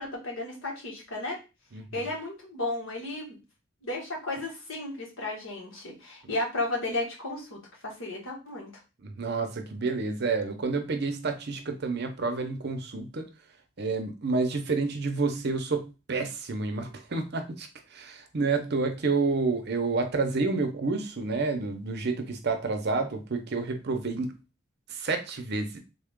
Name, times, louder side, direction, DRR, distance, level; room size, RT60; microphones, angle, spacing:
voice 1, 0.0-1.4 1.9-3.4 3.8-8.7, left 2 dB, 85° left, -2 dB, 1.5 m, -34 dB
voice 2, 1.7-2.1 9.0-13.3 13.8-24.4 24.9-25.8, right 3 dB, 55° right, 6 dB, 0.7 m, -29 dB
3.6 x 2.4 x 3.6 m, 0.29 s
head